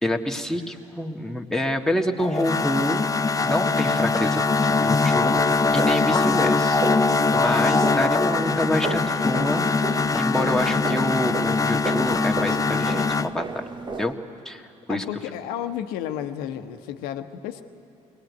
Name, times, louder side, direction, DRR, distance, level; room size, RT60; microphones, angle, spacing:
voice 1, 0.0-3.0 3.4-5.4 5.7-9.7 10.1-13.7 13.9-14.2 14.5-14.6 14.9-15.1, left 1 dB, 5° left, 2 dB, 1.8 m, -27 dB
sound 1, 2.2-13.3, left 4 dB, 20° left, 0.7 m, -22 dB
sound 2, 5.2-14.1, right 3 dB, 30° right, 1.4 m, -34 dB
voice 2, 14.9-17.6, left 10 dB, 80° left, 8 dB, 1.1 m, -32 dB
22.5 x 18.5 x 9.5 m, 2.5 s
hypercardioid pair, 60°, 16 cm